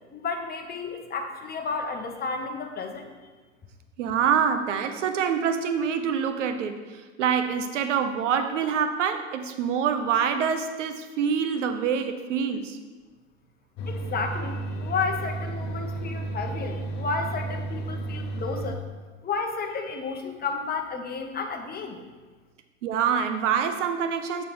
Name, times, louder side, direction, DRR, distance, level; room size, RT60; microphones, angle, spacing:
voice 1, 0.1-3.1 13.9-18.8 19.2-22.0, left 4 dB, 25° left, 4 dB, 1.1 m, -32 dB
voice 2, 4.0-12.8 22.8-24.4, right 7 dB, 80° right, 8 dB, 0.8 m, -26 dB
coffee vending machine, 13.8-18.7, right 2 dB, 50° left, 1.0 m, -32 dB
6.9 x 4.2 x 6.1 m, 1.3 s
hypercardioid pair, 90°, 36 cm